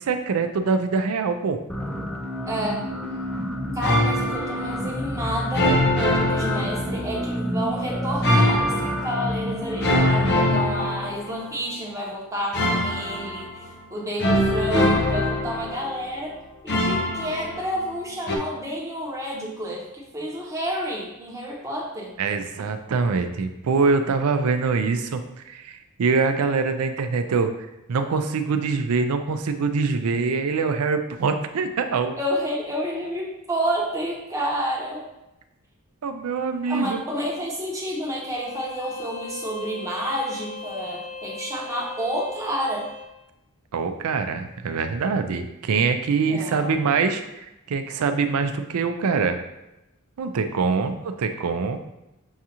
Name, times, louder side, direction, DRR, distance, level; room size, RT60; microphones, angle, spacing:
voice 1, 0.0-1.6 22.2-25.2 25.5-27.5 27.9-32.2 36.0-37.0 43.7-49.4 50.2-51.8, right 4 dB, 75° right, 8 dB, 0.4 m, -24 dB
sound 1, 1.7-10.3, equal, 5° left, 0.3 m, -29 dB
voice 2, 2.5-2.8 3.7-16.3 16.6-22.1 32.2-35.1 36.7-42.8 45.3-45.4 46.3-46.8, equal, 15° right, -3 dB, 0.9 m, -30 dB
sound 2, 3.8-4.7 5.5-7.3 8.2-9.3 9.8-11.6 12.5-13.7 14.2-16.1 16.7-17.9 18.3-18.4, left 1 dB, 50° left, 0.6 m, -23 dB
Bowed string instrument, 38.3-43.1, left 3 dB, 80° left, 0.8 m, -38 dB
6.3 x 2.4 x 2.9 m, 0.92 s
head